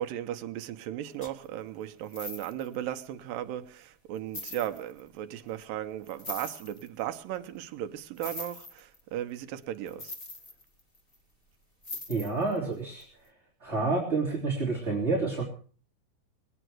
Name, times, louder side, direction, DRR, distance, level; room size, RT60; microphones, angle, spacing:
voice 1, 0.0-10.1, right 12 dB, 75° right, 2.5 m, -36 dB
sound 1, 1.2-1.5 2.0-2.8 3.5-3.6 4.2-5.0 6.0-6.9 8.2-9.0 9.9-11.2 11.8-12.6 13.0-13.1, left 2 dB, 35° left, 0.8 m, -41 dB
voice 2, 12.1-13.0 13.6-15.4, right 3 dB, 20° right, 3.3 m, -28 dB
21.5 x 8.9 x 6.2 m
omnidirectional pair, 4.2 m